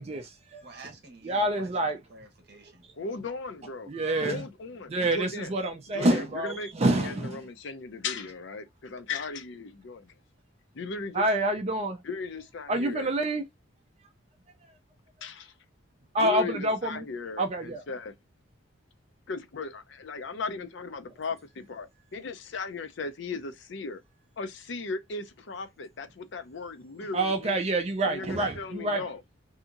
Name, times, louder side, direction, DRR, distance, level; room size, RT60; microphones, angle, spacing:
voice 1, 0.0-0.7 1.2-2.0 3.9-4.4 4.9-7.4 11.1-12.0 12.7-13.4 16.1-17.0 17.4-17.8 27.1-29.0, right 1 dB, 30° right, 0.4 m, -27 dB
voice 2, 0.6-2.9 27.0-27.1, right 3 dB, 50° right, 0.9 m, -50 dB
voice 3, 3.0-3.9 4.2-5.5 5.9-10.1 10.7-11.2 12.0-13.1 15.2-15.5 16.2-18.1 19.3-24.0 24.4-27.6 28.1-29.2, left 4 dB, 60° left, 0.5 m, -37 dB
2.8 x 2.6 x 2.4 m
head